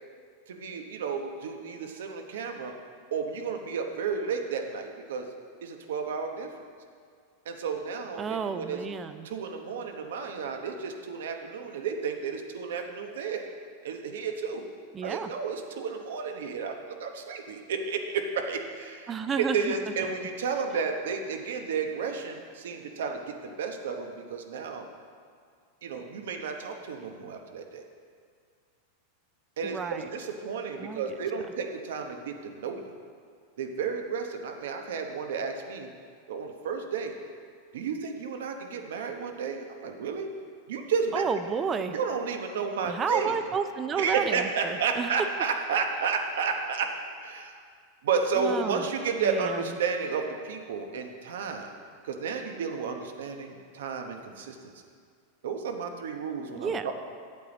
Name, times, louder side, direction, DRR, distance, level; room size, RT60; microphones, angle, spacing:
voice 1, 0.5-2.7 3.1-5.3 5.6-6.5 7.4-8.8 9.2-13.5 13.8-14.6 15.0-24.9 25.8-27.8 29.6-32.9 33.6-35.9 36.3-37.1 37.7-40.3 40.7-41.2 41.9-43.4 44.0-46.9 47.2-47.5 48.0-51.7 52.0-54.7 55.4-56.9, right 5 dB, 80° right, 5 dB, 0.9 m, -32 dB
voice 2, 8.2-9.3 14.9-15.3 19.1-19.7 29.6-30.1 30.8-31.0 41.1-42.0 42.8-45.1 48.4-48.8 49.2-49.6 56.5-56.9, right 6 dB, 25° right, 10 dB, 0.4 m, -31 dB
8.6 x 8.3 x 4.0 m, 2.1 s
supercardioid pair, 135°, 0 cm